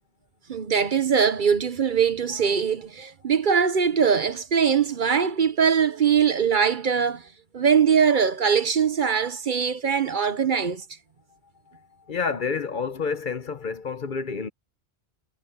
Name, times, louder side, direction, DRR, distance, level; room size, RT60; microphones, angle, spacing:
voice 1, 0.5-7.3 7.5-10.8, right 7 dB, 50° right, 0.9 m, -22 dB
voice 2, 12.1-14.5, left 5 dB, 50° left, 0.9 m, -29 dB
omnidirectional pair, 1.1 m